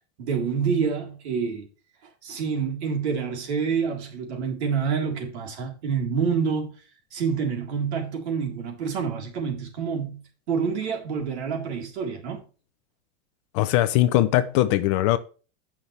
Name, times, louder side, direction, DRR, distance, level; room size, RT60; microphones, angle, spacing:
voice 1, 0.2-1.7 2.2-6.7 7.1-10.2 10.5-12.4, right 6 dB, 80° right, 3.7 m, -27 dB
voice 2, 13.5-15.2, left 15 dB, 30° left, 0.4 m, -20 dB
17.0 x 5.8 x 3.2 m
supercardioid pair, 175°, 33 cm